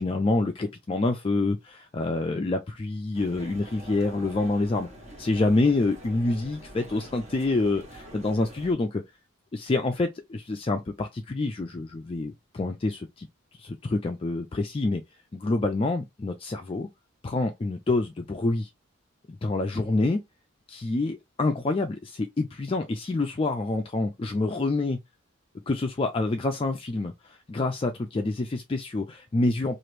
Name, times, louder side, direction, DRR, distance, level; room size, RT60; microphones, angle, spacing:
voice 1, 0.0-4.9 5.2-9.0 9.5-13.3 13.5-15.0 15.3-16.9 17.2-18.7 19.3-20.2 20.7-25.0 25.7-29.8, left 2 dB, 25° left, 0.3 m, -27 dB
sound 1, 3.1-8.7, right 1 dB, 35° right, 1.0 m, -45 dB
2.9 x 2.5 x 3.1 m
head